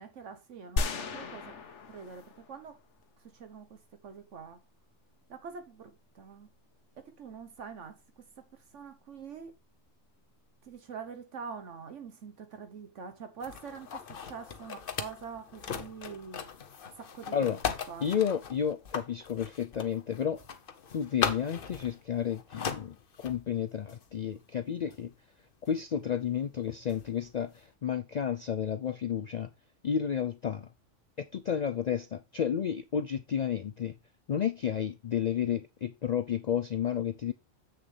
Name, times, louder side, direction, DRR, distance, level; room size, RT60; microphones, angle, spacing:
voice 1, 0.0-1.5 1.9-2.7 3.3-4.6 5.3-6.5 7.2-8.4 8.7-9.5 10.6-16.4 17.0-17.6 17.9-18.2, right 6 dB, 70° right, 1.3 m, -45 dB
sound 1, 0.8-3.0, left 3 dB, 65° left, 1.3 m, -35 dB
sound 2, 13.4-23.5 23.9-24.1 24.9-25.0 25.7-25.8 26.9-27.2, left 6 dB, 50° left, 0.9 m, -38 dB
voice 2, 18.0-20.4 20.9-25.1 25.7-29.5 29.8-30.7 31.2-33.9 34.3-37.3, left 8 dB, 80° left, 0.3 m, -31 dB
7.8 x 6.7 x 3.3 m
omnidirectional pair, 1.3 m